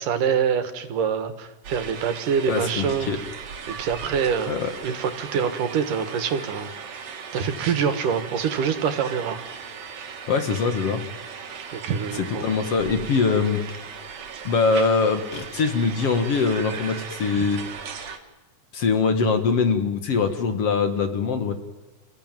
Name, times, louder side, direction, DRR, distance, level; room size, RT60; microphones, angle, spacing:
voice 1, 0.0-3.1 3.7-4.5 4.8-6.7 7.3-9.4 11.7-12.6 17.4-17.5, right 7 dB, 80° right, 9 dB, 3.1 m, -25 dB
sound 1, 1.6-18.2, right 6 dB, 60° right, 3.0 m, -37 dB
voice 2, 2.5-3.2 4.5-4.7 10.3-11.0 12.2-13.6 14.4-17.6 18.7-21.5, left 4 dB, 55° left, 7 dB, 2.3 m, -23 dB
29.0 x 16.0 x 9.2 m, 1.2 s
omnidirectional pair, 3.7 m